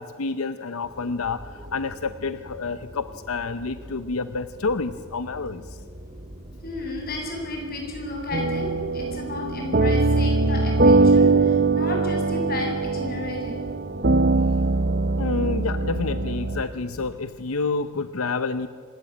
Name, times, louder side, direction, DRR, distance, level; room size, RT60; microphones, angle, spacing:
voice 1, 0.0-5.8 15.2-18.7, left 4 dB, 85° left, 12 dB, 0.7 m, -29 dB
sound 1, 0.8-17.1, equal, 30° right, 2.4 m, -43 dB
voice 2, 6.6-13.6, left 2 dB, 45° left, 0 dB, 8.0 m, -32 dB
sound 2, 8.3-16.6, right 3 dB, 45° right, 0.8 m, -21 dB
26.0 x 21.0 x 9.0 m, 2.1 s
head